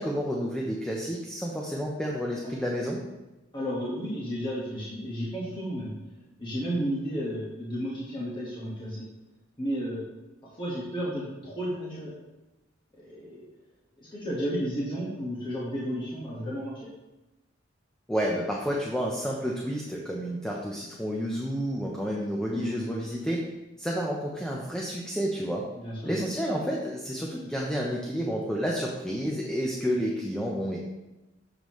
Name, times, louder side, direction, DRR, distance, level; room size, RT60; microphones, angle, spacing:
voice 1, 0.0-3.0 18.1-23.4 23.8-25.6 26.0-30.8, equal, 5° left, -3 dB, 0.7 m, -30 dB
voice 2, 3.5-5.9 6.4-9.0 9.6-10.1 10.4-12.1 13.0-13.4 14.1-16.9 22.5-22.8 25.8-26.0, equal, 25° left, -7 dB, 1.5 m, -32 dB
7.2 x 6.7 x 3.1 m, 1.0 s
head